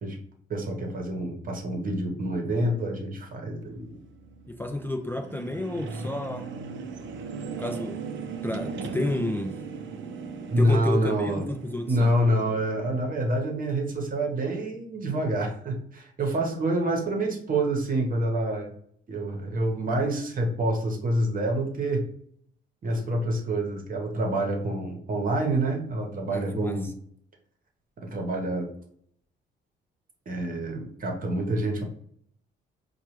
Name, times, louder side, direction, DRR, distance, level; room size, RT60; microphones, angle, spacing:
voice 1, 0.5-4.0 10.5-11.5 11.9-18.7 19.1-22.1 22.8-26.9 28.0-28.7 30.3-31.8, right 1 dB, 45° right, 2 dB, 1.0 m, -27 dB
sound 1, 3.6-13.4, right 5 dB, 70° right, 0.5 m, -38 dB
voice 2, 4.5-6.5 7.6-8.0 8.4-9.6 10.6-12.1 26.3-26.9, left 2 dB, 10° left, 3 dB, 0.3 m, -31 dB
4.6 x 2.3 x 3.0 m, 0.66 s
cardioid pair, 90°, 20 cm